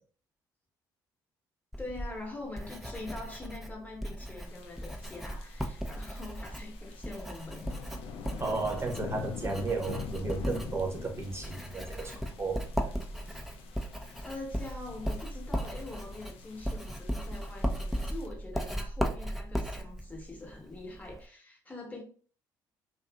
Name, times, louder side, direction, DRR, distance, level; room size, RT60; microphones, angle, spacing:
Writing, 1.7-21.3, equal, ahead, 0.5 m, -37 dB
voice 1, 1.8-7.7 14.1-22.0, left 2 dB, 15° left, 1.0 m, -44 dB
sound 1, 4.4-18.3, left 8 dB, 60° left, 0.4 m, -46 dB
voice 2, 8.4-12.6, right 3 dB, 25° right, 0.9 m, -34 dB
2.5 x 2.5 x 2.2 m
hypercardioid pair, 55°, 11 cm